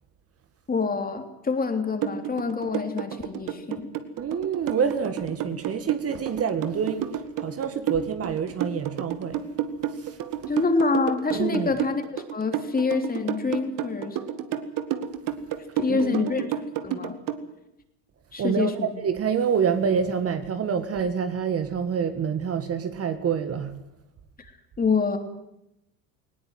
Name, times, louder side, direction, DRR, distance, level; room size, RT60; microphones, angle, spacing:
voice 1, 0.7-3.9 10.5-14.2 15.8-16.5 16.8-17.2 18.3-18.9 24.8-25.2, left 4 dB, 20° left, 3.3 m, -26 dB
sound 1, 2.0-17.4, right 11 dB, 55° right, 2.1 m, -30 dB
voice 2, 4.2-9.4 9.9-10.2 11.3-11.7 15.9-16.4 18.4-23.8, right 7 dB, 35° right, 1.9 m, -27 dB
19.5 x 18.0 x 9.4 m
supercardioid pair, 105°, 39 cm